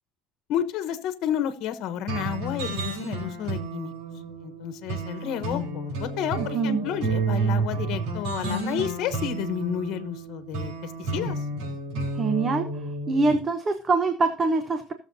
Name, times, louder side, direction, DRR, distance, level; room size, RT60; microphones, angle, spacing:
voice 1, 0.5-3.9 4.4-11.3, left 10 dB, 65° left, 11 dB, 1.1 m, -31 dB
sound 1, 2.1-13.4, right 3 dB, 85° right, 4.2 m, -31 dB
voice 2, 6.4-6.9 12.1-12.7 13.1-14.9, right 3 dB, 30° right, 8 dB, 0.9 m, -24 dB
18.0 x 7.0 x 2.8 m, 0.35 s
cardioid pair, 115°, 0 cm